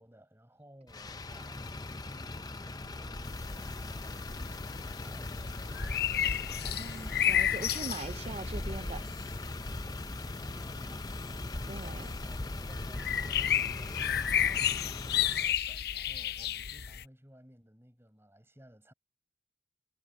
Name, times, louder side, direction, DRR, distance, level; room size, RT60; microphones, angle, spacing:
voice 1, 0.0-6.0 6.2-6.6 10.2-18.9, equal, 15° right, 7.7 m, -57 dB
Motor vehicle (road), 0.9-15.5, left 2 dB, 20° left, 0.6 m, -40 dB
sound 1, 3.2-17.0, left 10 dB, 55° left, 0.8 m, -33 dB
voice 2, 6.8-9.1 11.7-12.1, right 3 dB, 35° right, 0.4 m, -41 dB
head